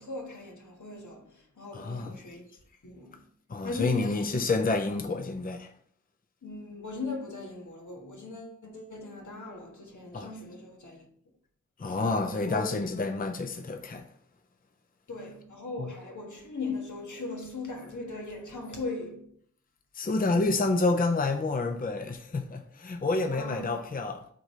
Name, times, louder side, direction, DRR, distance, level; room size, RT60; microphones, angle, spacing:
voice 1, 0.0-2.4 2.8-3.2 3.6-4.6 6.4-11.1 12.2-12.7 15.1-19.3 23.3-23.8, left 3 dB, 80° left, 1.5 m, -39 dB
voice 2, 1.7-2.2 3.5-5.7 10.1-10.3 11.8-14.1 15.8-15.9 19.9-24.3, left 3 dB, 30° left, 0.5 m, -29 dB
4.7 x 3.8 x 5.4 m
wide cardioid pair, 70°, 30 cm